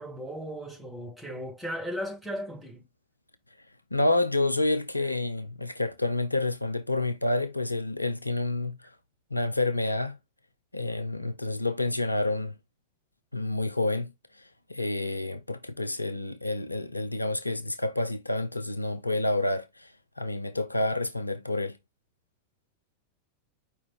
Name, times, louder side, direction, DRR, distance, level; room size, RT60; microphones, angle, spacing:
voice 1, 0.0-2.8, equal, ahead, 2.7 m, -36 dB
voice 2, 3.9-8.9 9.3-10.2 10.7-12.5 13.3-21.8, left 2 dB, 85° left, 0.4 m, -29 dB
4.8 x 2.8 x 3.6 m
figure-of-eight pair, 90°, 0 cm